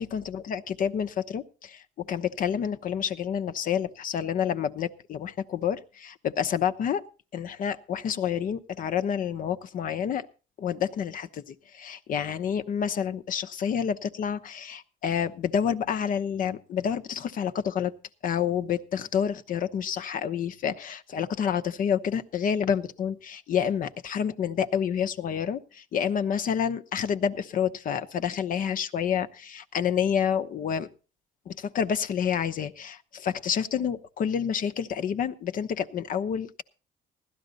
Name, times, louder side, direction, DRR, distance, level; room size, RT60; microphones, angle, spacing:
voice 1, 0.0-7.0 7.3-10.3 10.6-17.9 18.2-30.9 31.5-36.6, left 8 dB, 55° left, 10 dB, 0.9 m, -29 dB
16.5 x 12.0 x 4.0 m, 0.34 s
cardioid pair, 110°, 17 cm